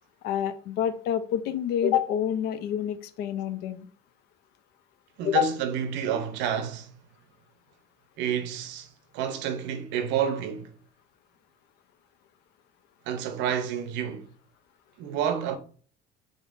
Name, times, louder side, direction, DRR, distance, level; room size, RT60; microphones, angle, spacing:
voice 1, 0.2-3.9 5.2-5.5, left 9 dB, 60° left, 0.4 m, -27 dB
voice 2, 5.2-6.9 8.2-8.9 9.1-10.7 13.1-14.3 15.0-15.6, right 8 dB, 75° right, 0.6 m, -29 dB
3.7 x 3.5 x 2.5 m
cardioid pair, 170°, 19 cm